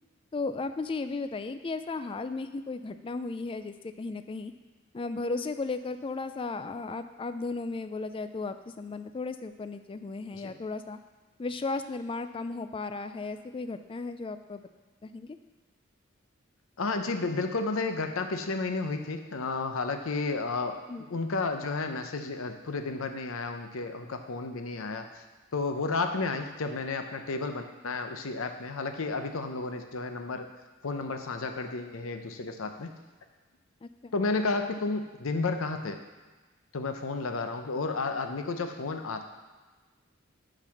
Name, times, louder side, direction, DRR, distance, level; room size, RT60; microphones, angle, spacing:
voice 1, 0.3-4.5 4.9-11.0 11.4-14.6 15.0-15.4 20.9-21.0 33.8-34.1, left 3 dB, 25° left, 10 dB, 0.3 m, -35 dB
voice 2, 16.8-20.8 21.1-25.2 25.5-30.5 30.8-32.9 34.1-36.0 36.7-39.2, left 3 dB, 75° left, 6 dB, 0.7 m, -32 dB
8.9 x 4.0 x 5.8 m, 1.3 s
head